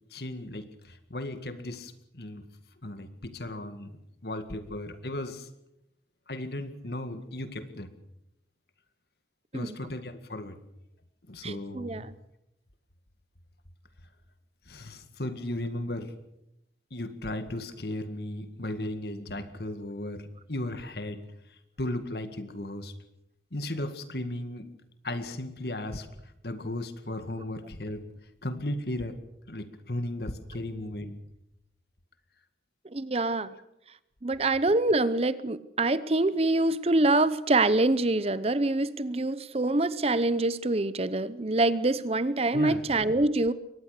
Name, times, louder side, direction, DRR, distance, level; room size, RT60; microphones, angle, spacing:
voice 1, 0.1-2.4 2.8-5.5 6.3-7.9 9.5-10.6 11.3-12.1 14.7-16.1 16.9-21.2 21.8-22.9 23.5-24.7 25.0-28.1 28.4-29.2 29.5-31.2 42.5-42.8, left 1 dB, 60° left, 2.0 m, -36 dB
voice 2, 11.4-12.1 32.9-33.6 34.2-43.5, right 2 dB, 35° right, 0.7 m, -25 dB
23.0 x 19.5 x 6.7 m
head